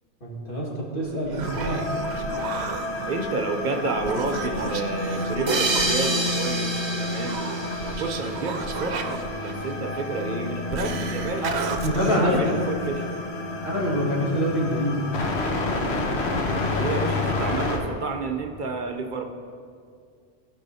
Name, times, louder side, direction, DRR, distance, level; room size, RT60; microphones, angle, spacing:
voice 1, 0.2-0.7 0.9-1.8 11.4-11.5 11.8-12.4 13.6-15.1, equal, 55° left, -6 dB, 2.0 m, -25 dB
Human voice, 1.0-13.3, right 5 dB, 85° right, 0.9 m, -35 dB
sound 1, 1.4-17.8, left 2 dB, 80° left, 1.2 m, -30 dB
voice 2, 3.1-7.5 7.8-9.1 9.4-11.5 12.0-13.1 16.7-19.2, right 4 dB, 55° right, 5 dB, 0.7 m, -30 dB
sound 2, 5.5-8.8, right 2 dB, 25° right, 0.9 m, -28 dB
16.5 x 5.5 x 2.7 m, 2.2 s
omnidirectional pair, 1.1 m